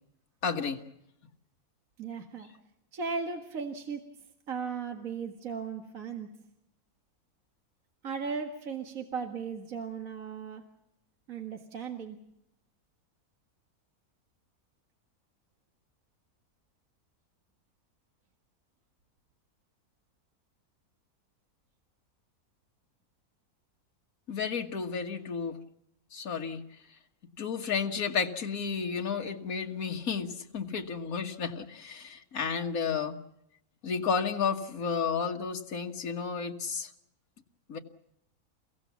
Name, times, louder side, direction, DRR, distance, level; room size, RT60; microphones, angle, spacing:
voice 1, 0.4-0.8 24.3-25.6 26.1-26.6 27.4-33.2 33.8-36.9 37.7-37.8, left 6 dB, 65° left, 3 dB, 2.0 m, -32 dB
voice 2, 2.0-2.5 2.9-4.1 4.5-6.3 8.0-10.6 11.3-12.2, right 5 dB, 60° right, 4 dB, 2.1 m, -36 dB
30.0 x 16.5 x 7.2 m, 0.79 s
omnidirectional pair, 1.6 m